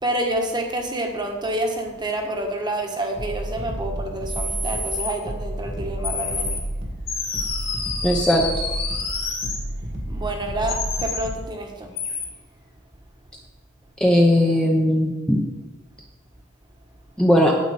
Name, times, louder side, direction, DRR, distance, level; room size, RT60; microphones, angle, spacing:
voice 1, 0.0-6.6 10.1-11.9, right 1 dB, 20° right, 2 dB, 1.3 m, -28 dB
sound 1, 3.2-11.5, right 1 dB, 55° right, 1.8 m, -31 dB
sound 2, 4.3-5.1 6.0-6.6 7.1-9.6 10.7-11.2 12.0-12.3, left 4 dB, 50° left, 2.4 m, -28 dB
voice 2, 8.0-8.4 14.0-15.5 17.2-17.5, equal, 5° left, -1 dB, 0.8 m, -18 dB
9.3 x 8.2 x 4.2 m, 1.2 s
head